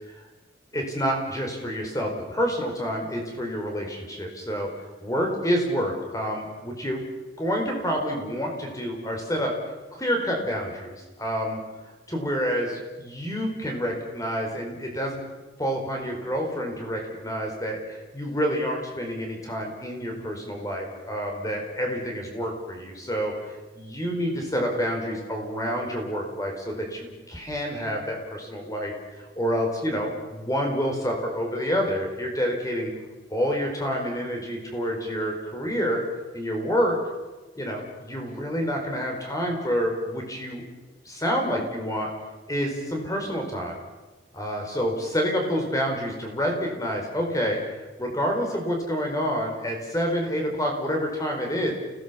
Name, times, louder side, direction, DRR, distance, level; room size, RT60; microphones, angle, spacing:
voice 1, 0.7-4.7 5.0-7.0 7.4-9.5 9.9-10.9 11.2-11.6 12.1-15.2 15.6-23.3 23.7-32.9 33.3-36.0 36.3-37.0 37.6-40.6 41.0-42.1 42.5-43.8 44.3-47.6 48.0-51.7, equal, 20° left, 2 dB, 4.8 m, -28 dB
29.5 x 17.5 x 7.1 m, 1.2 s
head